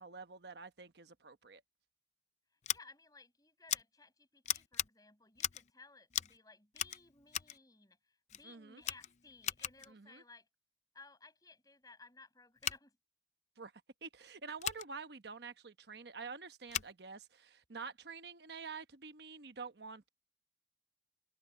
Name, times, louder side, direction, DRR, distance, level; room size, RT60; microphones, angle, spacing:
voice 1, 0.0-1.6 8.4-8.8 9.9-10.2 13.6-13.7 14.0-20.1, right 4 dB, 70° right, 1.0 m, -48 dB
Scissors, 2.6-2.8 3.7-3.8 4.4-4.9 5.4-5.7 6.1-6.4 6.7-7.6 8.3-8.4 8.8-9.9 12.6-12.8 14.6-14.8 16.7-16.9, left 11 dB, 40° left, 0.5 m, -38 dB
voice 2, 2.7-10.5 10.9-13.0, left 3 dB, 20° left, 7.4 m, -59 dB
open air
head